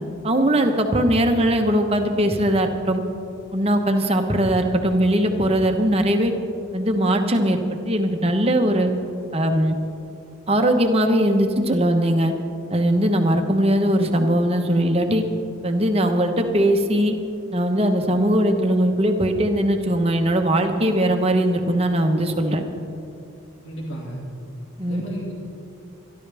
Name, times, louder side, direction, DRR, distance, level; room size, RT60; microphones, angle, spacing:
voice 1, 0.2-3.0 3.5-6.3 6.7-8.9 9.3-9.8 10.5-12.3 12.7-15.2 15.6-17.1 17.5-22.6 24.8-25.0, right 1 dB, 30° right, 5 dB, 1.0 m, -20 dB
voice 2, 23.6-24.2 24.8-25.4, equal, 70° left, -3 dB, 2.2 m, -33 dB
26.5 x 11.5 x 3.5 m, 2.6 s
head